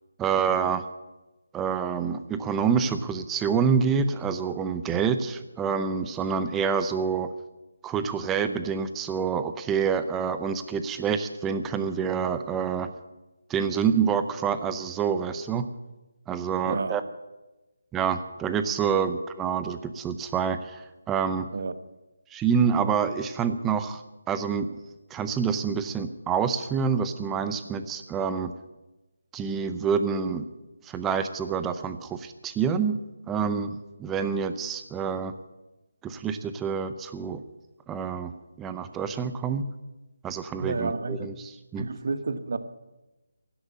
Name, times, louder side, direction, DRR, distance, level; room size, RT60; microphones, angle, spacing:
voice 1, 0.2-0.9 1.5-7.3 7.8-12.9 13.5-15.6 16.3-17.0 17.9-21.5 22.3-24.0 24.3-24.7 25.1-28.5 29.3-30.5 30.8-33.0 33.3-35.3 36.0-37.4 37.9-38.3 38.6-39.7 40.2-41.9, right 6 dB, 10° right, 0.6 m, -27 dB
voice 2, 16.6-17.0 21.5-21.7 40.6-41.3 41.8-42.6, right 4 dB, 55° right, 1.1 m, -30 dB
16.0 x 7.9 x 9.7 m
figure-of-eight pair, 170°, 0 cm